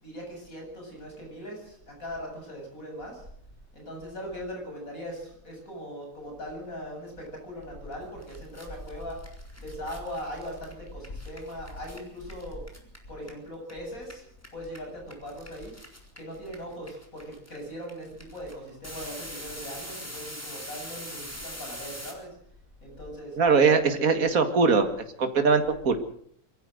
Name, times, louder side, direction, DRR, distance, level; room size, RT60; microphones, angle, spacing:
voice 1, 0.0-3.2 3.7-9.2 9.6-12.6 13.1-14.2 14.5-15.7 16.2-22.3 22.8-23.4, equal, 65° left, 1 dB, 8.7 m, -39 dB
sound 1, 7.9-8.0 8.2-13.7 14.0-22.1, equal, 10° left, 4.1 m, -43 dB
voice 2, 23.4-24.9 25.2-26.0, right 5 dB, 65° right, 7 dB, 2.3 m, -21 dB
24.0 x 15.0 x 7.8 m, 0.65 s
omnidirectional pair, 1.6 m